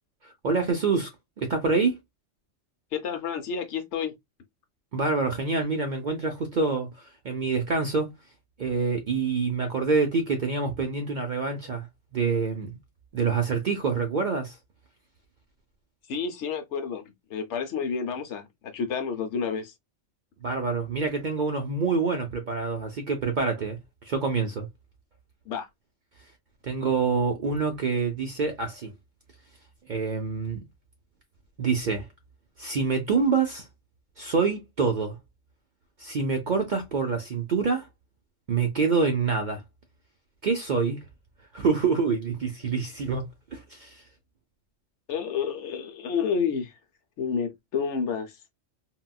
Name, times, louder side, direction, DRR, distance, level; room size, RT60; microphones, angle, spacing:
voice 1, 0.2-1.1 1.4-2.0 4.9-8.1 8.6-11.9 12.1-12.7 13.1-14.5 20.4-23.8 24.1-24.7 26.6-28.9 29.9-30.6 31.6-32.1 32.6-33.7 34.2-35.2 36.0-37.9 38.5-39.6 40.4-41.0 41.5-44.0, right 4 dB, 50° right, 0.6 m, -26 dB
voice 2, 2.9-4.1 16.1-17.0 17.3-19.7 25.5-25.7 45.1-46.7 47.2-48.3, left 6 dB, 65° left, 0.9 m, -30 dB
3.8 x 2.2 x 2.2 m
omnidirectional pair, 1.3 m